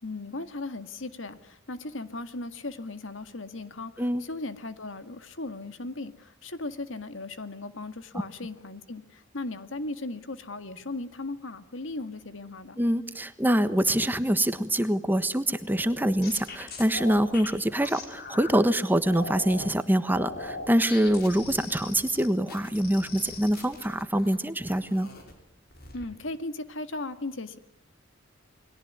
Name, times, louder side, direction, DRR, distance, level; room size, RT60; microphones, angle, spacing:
voice 1, 0.0-12.8 25.9-27.6, left 2 dB, 80° left, 10 dB, 1.9 m, -37 dB
voice 2, 12.8-25.1, right 1 dB, 10° right, 11 dB, 1.3 m, -25 dB
sound 1, 15.7-18.6 19.0-19.7 20.1-24.3 24.7-25.3 25.7-26.1, left 3 dB, 55° left, 5.9 m, -40 dB
29.0 x 21.5 x 9.5 m, 0.75 s
head